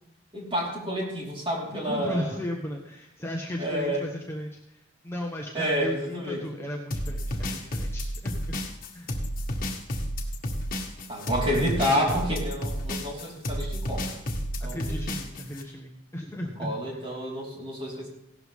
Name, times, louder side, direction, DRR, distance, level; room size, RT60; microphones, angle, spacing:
voice 1, 0.3-2.4 3.6-4.1 5.5-6.4 11.1-14.1 14.6-15.0 16.6-18.1, equal, 30° right, -4 dB, 4.5 m, -29 dB
voice 2, 1.6-8.6 8.9-9.2 11.5-12.2 14.6-17.1, left 1 dB, 15° left, 0 dB, 1.3 m, -36 dB
sound 1, 6.9-15.6, equal, 45° left, 2.0 m, -31 dB
17.0 x 13.0 x 3.7 m, 0.80 s
head